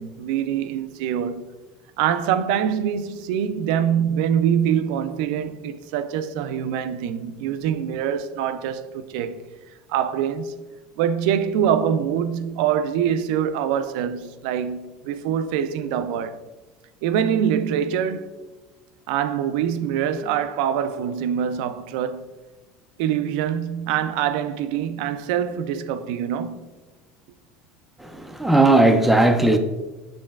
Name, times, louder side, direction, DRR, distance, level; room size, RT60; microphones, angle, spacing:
voice 1, 0.0-1.5 2.0-9.4 9.9-10.6 11.0-16.4 17.0-18.3 19.1-22.2 23.0-26.7, right 9 dB, 75° right, 0.3 m, -24 dB
voice 2, 28.0-29.6, right 2 dB, 5° right, 0.3 m, -17 dB
6.4 x 3.2 x 2.3 m
cardioid pair, 140°, 4 cm